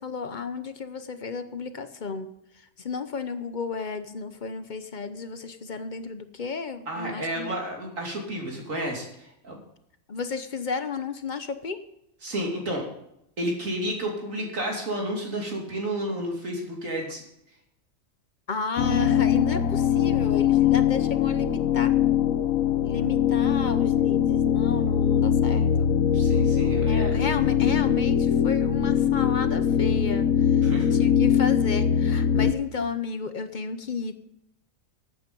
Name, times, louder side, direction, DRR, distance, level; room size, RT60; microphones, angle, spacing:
voice 1, 0.0-2.3 2.8-7.5 10.1-11.8 18.5-21.9 22.8-25.9 26.9-30.5 30.8-34.2, left 5 dB, 45° left, 10 dB, 0.8 m, -32 dB
voice 2, 6.9-9.6 12.2-12.8 13.4-17.2 26.1-27.1 30.6-30.9, right 1 dB, 80° right, 0 dB, 3.2 m, -31 dB
sound 1, 18.8-32.5, left 9 dB, 80° left, 1.2 m, -22 dB
13.0 x 8.8 x 5.3 m, 0.79 s
omnidirectional pair, 1.4 m